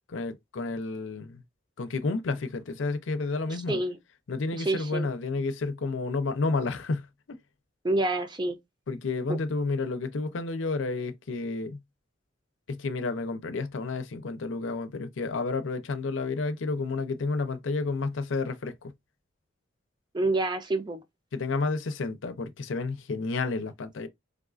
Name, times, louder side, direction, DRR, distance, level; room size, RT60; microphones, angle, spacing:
voice 1, 0.1-1.4 1.8-3.8 4.3-7.1 8.9-11.8 12.7-18.9 21.3-24.1, left 3 dB, 85° left, 0.6 m, -31 dB
voice 2, 3.5-4.0 4.6-5.1 7.8-8.6 9.3-9.4 20.1-21.0, right 2 dB, 25° right, 0.5 m, -28 dB
3.5 x 2.4 x 2.4 m
head